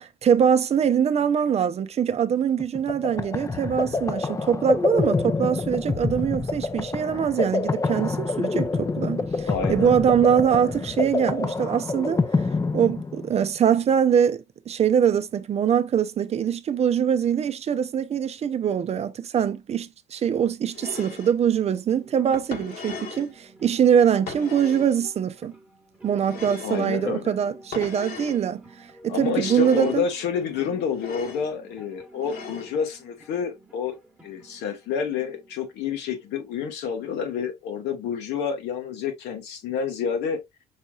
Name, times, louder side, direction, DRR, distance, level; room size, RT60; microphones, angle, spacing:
voice 1, 0.0-12.2 12.7-25.5 26.0-28.6 29.0-30.0, right 8 dB, 40° right, 0.5 m, -23 dB
sound 1, 2.6-13.4, left 3 dB, 20° left, 0.6 m, -27 dB
voice 2, 9.5-9.9 26.6-27.3 29.1-34.0 34.2-40.4, left 6 dB, 85° left, 1.4 m, -28 dB
sound 2, 20.7-21.3 22.3-23.3 24.3-25.0 26.2-26.9 27.7-28.4 29.3-30.0 30.9-31.5 32.2-32.8, left 5 dB, 60° left, 1.4 m, -37 dB
sound 3, 22.0-36.9, right 2 dB, 10° right, 1.2 m, -51 dB
5.6 x 3.0 x 2.4 m
cardioid pair, 110°, 17 cm